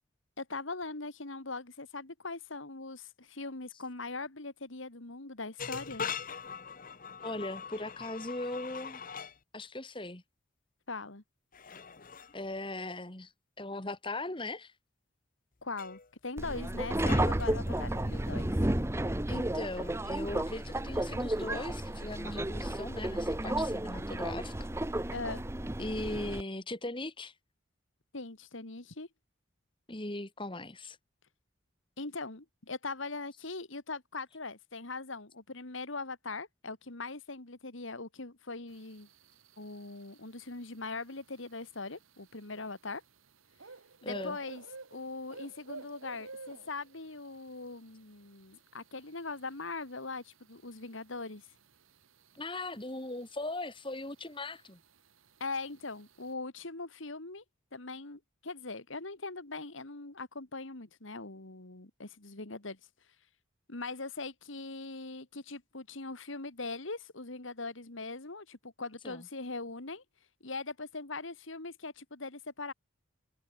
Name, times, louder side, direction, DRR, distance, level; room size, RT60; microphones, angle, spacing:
voice 1, 0.4-6.0 10.9-11.2 15.6-18.5 25.1-25.4 28.1-29.1 32.0-39.1 39.6-43.0 44.0-44.6 44.9-51.5 55.4-57.4 57.7-62.8 63.7-70.0 70.4-72.7, left 3 dB, 75° left, 2.3 m, -41 dB
sound 1, 5.6-9.4 11.5-12.4 15.8-16.1 17.0-18.1, left 6 dB, 40° left, 0.9 m, -42 dB
voice 2, 7.2-9.0 9.5-10.2 12.3-13.3 13.6-14.7 19.3-24.5 25.8-27.3 29.9-31.0 44.0-44.4 52.3-54.8 69.0-69.3, left 2 dB, 25° left, 2.1 m, -39 dB
Subway metro underground, 16.4-26.4, right 1 dB, 15° right, 0.7 m, -32 dB
sound 2, 38.7-56.3, right 4 dB, 90° right, 1.8 m, -55 dB
head